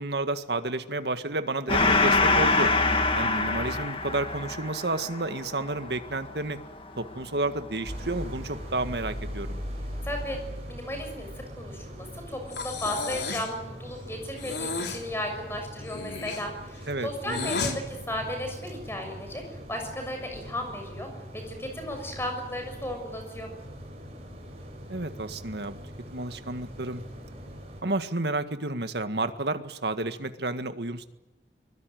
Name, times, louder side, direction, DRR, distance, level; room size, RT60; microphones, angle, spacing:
voice 1, 0.0-2.7 3.1-6.6 7.0-9.6 16.9-17.8 24.9-25.8 26.1-27.0 27.8-31.0, right 2 dB, 70° right, 9 dB, 1.8 m, -31 dB
Gong, 1.7-8.6, left 3 dB, 30° left, 1.9 m, -26 dB
sound 1, 7.8-27.8, equal, 35° right, 7.6 m, -41 dB
voice 2, 10.0-10.4 10.7-11.3 11.5-23.5, left 1 dB, 15° left, 4 dB, 6.8 m, -35 dB
Breathing, 12.5-13.6 14.4-15.0 15.8-17.8, left 4 dB, 75° left, 3.4 m, -33 dB
24.0 x 22.0 x 9.4 m, 1.0 s
head